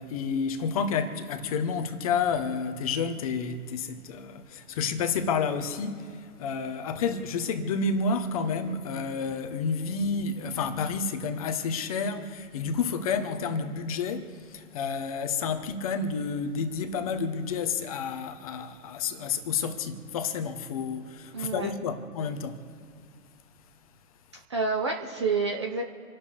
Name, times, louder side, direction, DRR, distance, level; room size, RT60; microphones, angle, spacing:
voice 1, 0.0-22.6, left 5 dB, 25° left, 1.1 m, -30 dB
voice 2, 21.3-21.7 24.5-25.8, right 4 dB, 20° right, 0.7 m, -28 dB
28.5 x 11.5 x 3.5 m
figure-of-eight pair, 145°, 45 cm